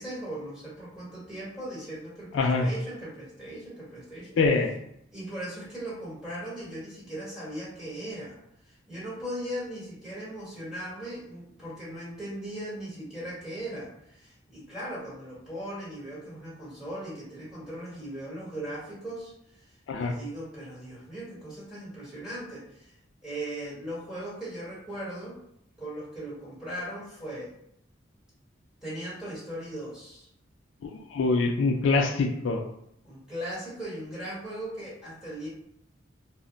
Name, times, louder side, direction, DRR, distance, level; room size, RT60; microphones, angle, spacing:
voice 1, 0.0-4.4 5.1-8.4 8.9-13.9 14.2-19.3 20.0-22.9 23.2-25.3 25.8-27.5 28.8-30.3 33.0-35.5, right 1 dB, 5° right, -8 dB, 1.1 m, -38 dB
voice 2, 2.3-2.7 4.4-4.7 19.9-20.1 31.1-32.6, left 3 dB, 70° left, 3 dB, 0.3 m, -24 dB
2.1 x 2.0 x 3.7 m, 0.74 s
head